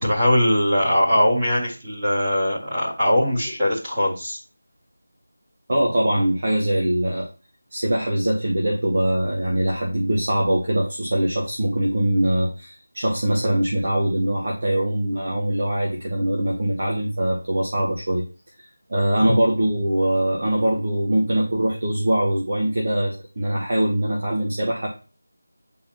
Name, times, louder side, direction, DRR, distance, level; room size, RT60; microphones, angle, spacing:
voice 1, 0.0-4.4 19.2-19.3, left 1 dB, 10° right, -11 dB, 2.2 m, -21 dB
voice 2, 5.7-7.3 7.7-18.2 18.6-24.9, right 1 dB, 30° right, -3 dB, 1.0 m, -22 dB
8.4 x 4.0 x 3.0 m, 0.35 s
figure-of-eight pair, 180°, 0 cm